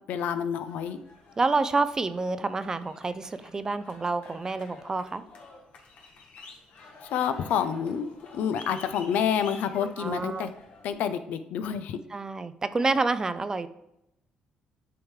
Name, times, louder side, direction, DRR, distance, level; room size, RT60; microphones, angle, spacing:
voice 1, 0.1-1.0 7.1-10.5 10.8-12.0, left 8 dB, 75° left, 10 dB, 0.5 m, -28 dB
sound 1, 0.6-10.9, left 3 dB, 60° left, 1.3 m, -50 dB
voice 2, 1.4-5.2 9.8-10.5 12.1-13.7, right 3 dB, 20° right, 12 dB, 0.4 m, -28 dB
9.2 x 3.7 x 3.2 m, 0.83 s
cardioid pair, 110°, 3 cm